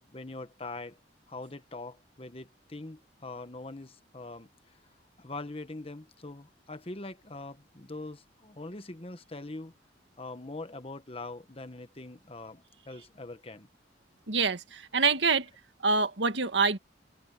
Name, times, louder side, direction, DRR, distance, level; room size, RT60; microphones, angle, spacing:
voice 1, 0.1-1.0 1.3-4.5 5.2-9.7 10.2-13.7, left 2 dB, 30° left, 1.2 m, -42 dB
voice 2, 14.3-15.5 15.8-16.8, right 4 dB, 85° right, 1.7 m, -26 dB
head